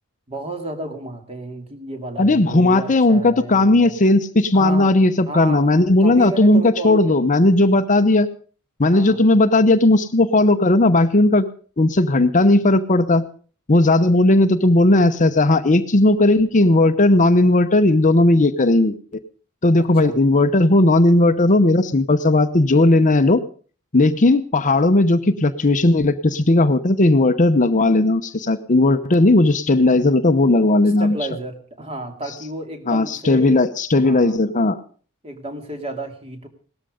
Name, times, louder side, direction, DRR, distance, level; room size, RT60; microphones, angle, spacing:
voice 1, 0.3-4.0 4.5-4.9 5.3-5.7 6.0-7.2 8.9-9.2 19.8-20.2 31.0-33.6 34.0-34.4 35.2-36.5, right 2 dB, 30° right, 5 dB, 2.5 m, -32 dB
voice 2, 2.2-8.3 8.8-11.5 11.8-13.2 13.7-19.0 19.6-23.4 23.9-31.2 32.9-34.8, left 2 dB, 35° left, 9 dB, 0.8 m, -16 dB
18.0 x 13.0 x 5.0 m, 0.40 s
head